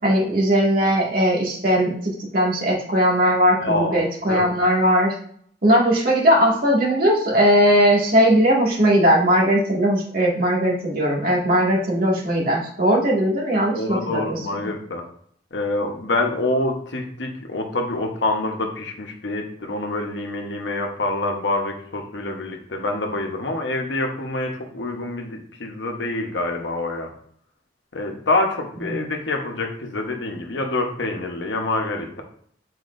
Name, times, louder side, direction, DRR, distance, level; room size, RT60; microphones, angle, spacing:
voice 1, 0.0-5.1 5.6-14.4 28.9-29.0, equal, 50° right, -4 dB, 2.0 m, -19 dB
voice 2, 3.6-4.0 4.3-4.6 13.8-15.0 15.5-27.1 27.9-32.2, left 2 dB, 70° left, 3 dB, 1.0 m, -26 dB
8.1 x 4.7 x 2.6 m, 0.63 s
head